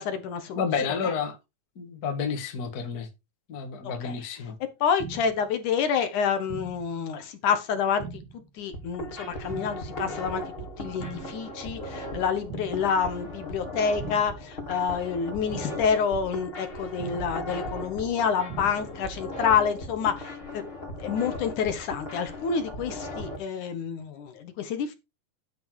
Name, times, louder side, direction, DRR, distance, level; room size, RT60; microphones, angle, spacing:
voice 1, 0.0-0.6 1.0-1.1 3.8-4.2 4.8-8.2 8.5-10.4 10.8-20.6 21.0-24.9, left 6 dB, 60° left, 2.2 m, -28 dB
voice 2, 0.5-1.4 1.7-3.1 3.5-4.5, left 6 dB, 80° left, 0.8 m, -30 dB
sound 1, 5.0-5.5 6.5-7.0 8.0-8.5 9.5-10.0 11.0-11.5 12.5-13.0 14.0-14.5 15.5-16.0 17.0-17.5 18.5-19.0, right 5 dB, 65° right, 3.7 m, -40 dB
sound 2, 8.6-23.4, left 1 dB, 15° left, 3.1 m, -37 dB
10.5 x 6.0 x 4.8 m
omnidirectional pair, 5.0 m